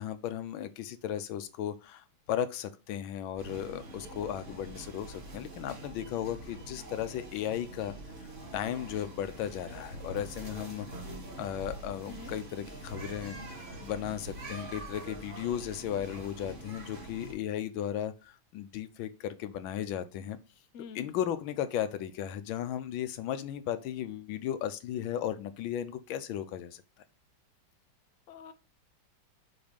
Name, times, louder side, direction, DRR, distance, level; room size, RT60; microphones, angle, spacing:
voice 1, 0.0-7.9 8.2-8.3 8.5-10.9 11.4-20.4 20.9-26.8, left 10 dB, 85° left, 1.4 m, -35 dB
sound 1, 3.4-17.3, right 1 dB, 25° right, 1.9 m, -44 dB
voice 2, 20.7-21.1 28.3-28.5, left 6 dB, 70° left, 0.7 m, -46 dB
6.1 x 3.1 x 5.1 m
omnidirectional pair, 2.1 m